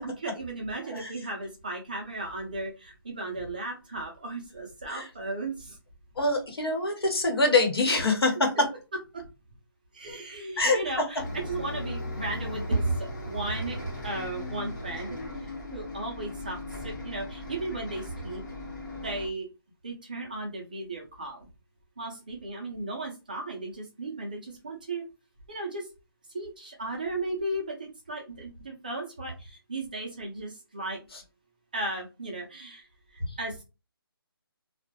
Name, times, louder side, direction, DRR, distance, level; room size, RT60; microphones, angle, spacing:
voice 1, 0.0-5.8 8.9-9.2 9.9-18.4 19.0-19.5 19.8-21.5 22.0-25.0 25.5-25.9 26.3-31.0 31.7-32.9 33.1-33.6, right 2 dB, 20° right, 0 dB, 0.4 m, -35 dB
voice 2, 6.2-8.5 10.6-10.8, left 2 dB, 75° left, 2 dB, 1.1 m, -24 dB
Bus, 11.2-19.3, left 2 dB, 50° left, 1.0 m, -38 dB
2.2 x 2.0 x 2.7 m, 0.28 s
hypercardioid pair, 170°, 13 cm